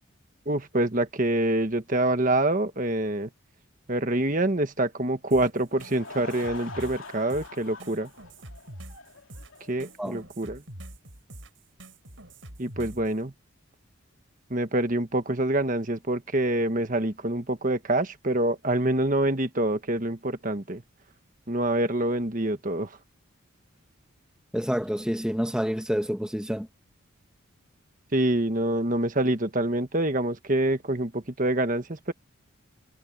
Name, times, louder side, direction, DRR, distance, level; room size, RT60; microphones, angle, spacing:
voice 1, 0.4-3.3 3.9-8.1 9.7-10.6 12.6-13.3 14.5-20.8 21.5-22.9 28.1-32.1, right 1 dB, 40° right, 1.4 m, -26 dB
sound 1, 5.3-13.1, right 1 dB, 65° right, 8.0 m, -45 dB
Laughter / Crowd, 5.6-10.1, left 4 dB, 70° left, 2.8 m, -44 dB
voice 2, 24.5-26.7, equal, 5° right, 1.2 m, -28 dB
head